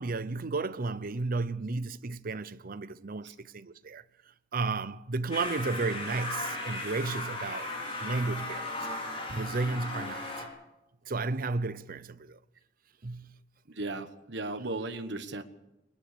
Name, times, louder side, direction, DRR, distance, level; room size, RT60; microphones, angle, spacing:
voice 1, 0.0-4.0 4.5-7.7 8.0-8.8 9.3-10.5 11.1-12.4 13.0-13.4, right 3 dB, 50° right, 0.7 m, -33 dB
sound 1, 5.3-10.5, left 2 dB, 30° left, 5.2 m, -36 dB
voice 2, 13.7-15.4, right 2 dB, 65° right, 1.4 m, -36 dB
21.5 x 21.0 x 6.9 m
head